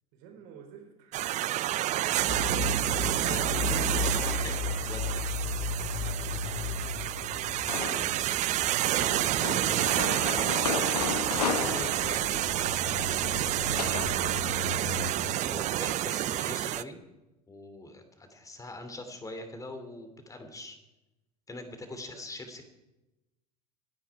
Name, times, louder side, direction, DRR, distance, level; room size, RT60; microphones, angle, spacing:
voice 1, 0.1-1.8 7.2-10.7 13.7-15.0 21.8-22.2, right 6 dB, 60° right, 3 dB, 4.4 m, -50 dB
sound 1, 1.1-16.8, right 15 dB, 35° right, 0.5 m, -29 dB
sound 2, 2.2-15.1, left 5 dB, 60° left, 3.8 m, -36 dB
voice 2, 2.4-2.9 3.2-5.3 11.4-12.5 15.4-17.0 17.5-20.8 21.5-22.6, left 2 dB, 15° left, 7 dB, 2.9 m, -42 dB
sound 3, 7.7-8.3 9.0-14.1, left 5 dB, 75° left, 1.5 m, -34 dB
27.0 x 10.0 x 4.7 m, 1.0 s
figure-of-eight pair, 75°, 20 cm